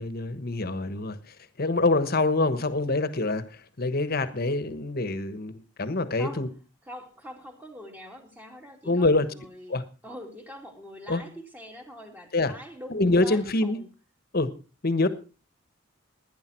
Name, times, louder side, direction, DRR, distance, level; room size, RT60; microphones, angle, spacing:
voice 1, 0.0-6.5 8.9-9.3 9.7-9.8 11.1-11.2 12.3-12.5 12.9-13.8 14.3-14.5 14.8-15.1, left 2 dB, 50° left, 1.3 m, -25 dB
voice 2, 6.1-6.5 6.8-9.8 10.0-13.9 15.0-15.1, equal, 10° right, 2.7 m, -44 dB
17.5 x 10.5 x 4.5 m
head